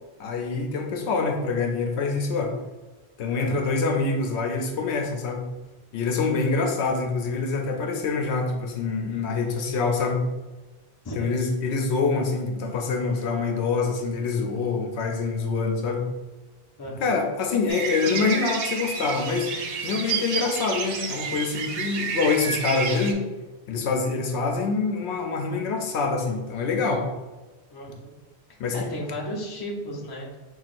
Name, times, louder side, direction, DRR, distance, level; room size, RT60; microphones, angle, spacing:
voice 1, 0.2-2.6 3.2-5.5 5.9-10.3 11.2-16.1 17.0-23.2 23.7-27.1 28.6-28.9, left 4 dB, 80° left, 2 dB, 0.9 m, -25 dB
voice 2, 3.4-3.7 11.0-11.4 16.8-17.1 23.7-23.8 27.7-28.1 28.5-30.3, equal, 25° left, -3 dB, 0.7 m, -35 dB
sound 1, 17.7-23.1, right 6 dB, 90° right, 0.9 m, -30 dB
5.7 x 2.4 x 2.5 m, 1.2 s
omnidirectional pair, 1.1 m